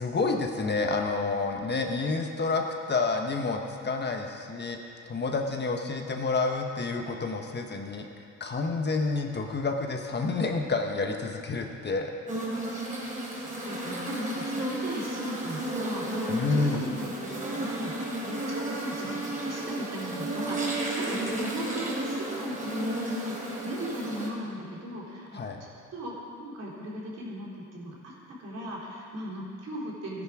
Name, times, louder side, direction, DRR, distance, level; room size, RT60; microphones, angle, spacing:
voice 1, 0.0-4.8 5.1-8.1 8.4-12.1 16.3-16.9 25.3-25.6, left 3 dB, 35° left, 3 dB, 1.2 m, -29 dB
sound 1, 12.3-24.3, right 1 dB, 25° right, 3.5 m, -33 dB
voice 2, 13.6-25.3 25.6-28.1 28.4-30.2, equal, 55° right, -4 dB, 3.6 m, -37 dB
14.0 x 10.5 x 5.0 m, 2.5 s
cardioid pair, 90°, 30 cm